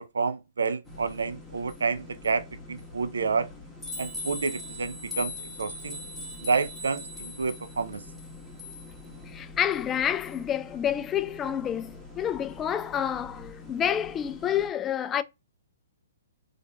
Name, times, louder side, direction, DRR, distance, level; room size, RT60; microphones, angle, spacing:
voice 1, 0.0-3.5 4.0-6.0 6.4-8.0, right 4 dB, 80° right, 0.5 m, -29 dB
sound 1, 0.9-14.7, left 2 dB, 5° left, 1.3 m, -42 dB
voice 2, 9.3-15.2, left 9 dB, 20° left, 0.3 m, -29 dB
3.7 x 3.4 x 2.3 m
hypercardioid pair, 130°, 0 cm